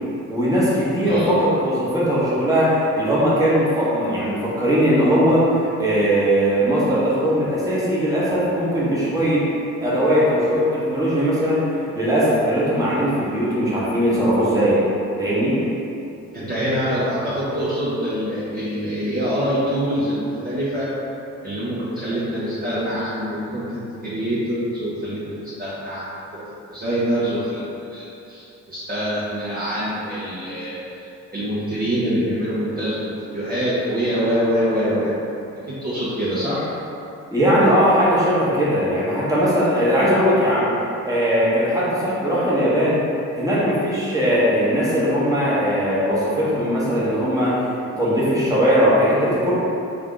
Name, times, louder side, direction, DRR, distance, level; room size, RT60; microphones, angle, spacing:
voice 1, 0.3-5.5 5.8-9.5 9.8-11.6 12.0-14.8 15.2-15.6 37.3-40.7 41.0-43.0 43.3-47.6 48.0-49.5, equal, 10° right, -8 dB, 1.1 m, -19 dB
voice 2, 1.0-1.4 16.3-20.9 21.4-26.4 26.7-35.1 35.7-36.7, equal, 30° right, -10 dB, 0.8 m, -25 dB
3.6 x 2.4 x 3.7 m, 2.7 s
cardioid pair, 90°, 30 cm